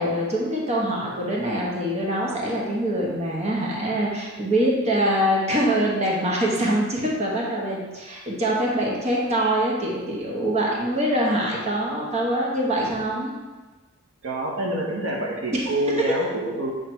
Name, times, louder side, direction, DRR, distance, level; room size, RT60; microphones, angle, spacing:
voice 1, 0.0-13.3 15.5-15.7 16.0-16.1, right 1 dB, 30° right, -3 dB, 1.0 m, -24 dB
voice 2, 14.2-16.7, right 1 dB, 80° right, -2 dB, 1.2 m, -27 dB
7.8 x 3.3 x 4.4 m, 1.3 s
head